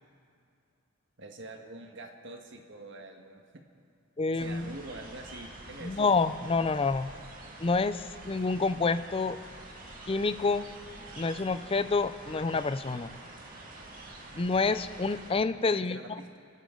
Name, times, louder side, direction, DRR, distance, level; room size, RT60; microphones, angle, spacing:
voice 1, 1.2-3.6 4.3-6.1 15.7-16.4, right 2 dB, 60° right, 3 dB, 1.4 m, -45 dB
voice 2, 4.2-4.7 5.8-7.1 7.6-9.4 10.1-10.7 11.2-13.1 14.4-16.0, left 4 dB, 25° left, 12 dB, 0.4 m, -28 dB
sound 1, 4.4-15.3, right 2 dB, 40° right, 2.0 m, -47 dB
29.5 x 12.0 x 3.8 m, 2.3 s
head